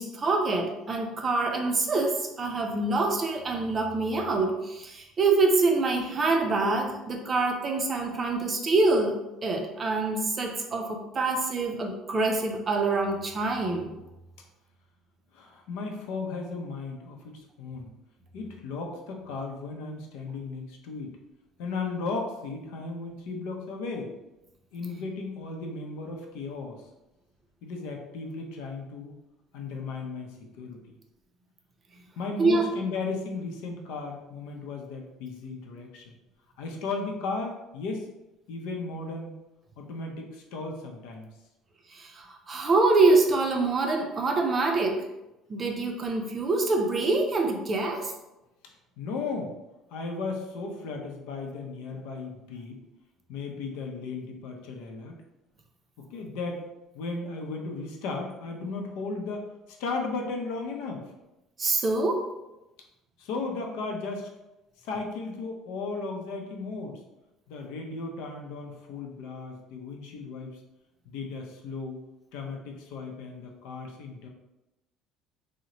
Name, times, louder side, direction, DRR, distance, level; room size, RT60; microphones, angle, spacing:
voice 1, 0.0-13.9 32.4-32.6 41.9-45.0 45.5-48.1 61.6-62.3, right 3 dB, 25° right, 2 dB, 0.4 m, -25 dB
voice 2, 15.3-17.9 18.3-21.1 21.6-24.1 24.7-26.8 27.6-29.2 29.5-30.8 32.2-36.2 36.6-38.1 38.5-39.3 39.8-41.3 49.0-49.5 49.9-52.8 53.3-55.2 56.1-56.6 56.9-61.0 63.2-64.3 64.8-67.0 67.5-70.6 71.1-72.0 72.3-74.3, left 3 dB, 85° left, 2 dB, 0.6 m, -35 dB
2.9 x 2.1 x 3.8 m, 0.96 s
cardioid pair, 165°, 0 cm